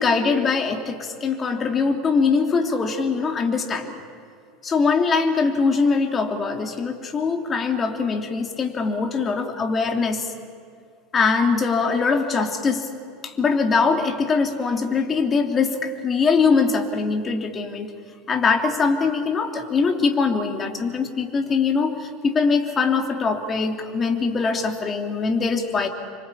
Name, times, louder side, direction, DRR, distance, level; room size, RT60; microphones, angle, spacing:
voice 1, 0.0-4.0 4.6-10.3 11.1-12.9 13.2-17.9 18.3-25.9, left 4 dB, 25° left, 4 dB, 3.2 m, -22 dB
27.5 x 24.5 x 8.8 m, 2.1 s
figure-of-eight pair, 75°, 0 cm